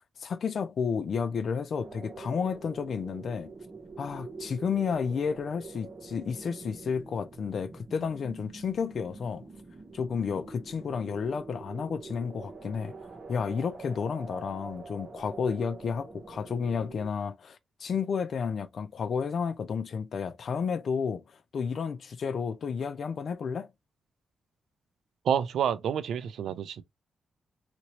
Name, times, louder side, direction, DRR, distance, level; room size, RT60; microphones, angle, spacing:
voice 1, 0.2-3.5 4.0-9.5 9.9-12.9 13.3-23.7, left 6 dB, 50° left, 0.4 m, -31 dB
sound 1, 1.8-17.1, right 4 dB, 30° right, 1.0 m, -45 dB
voice 2, 25.2-26.8, right 8 dB, 75° right, 0.4 m, -28 dB
2.9 x 2.9 x 2.8 m
wide cardioid pair, 150°, 0 cm